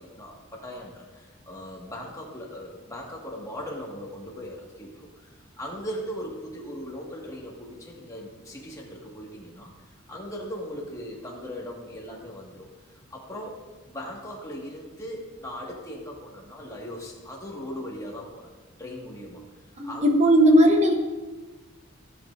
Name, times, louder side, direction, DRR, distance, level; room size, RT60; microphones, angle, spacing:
voice 1, 0.0-18.5 18.8-19.4 19.8-20.1, equal, 15° left, -3 dB, 1.8 m, -39 dB
voice 2, 19.8-20.9, equal, 35° right, 3 dB, 1.1 m, -17 dB
16.0 x 7.5 x 2.6 m, 1.3 s
head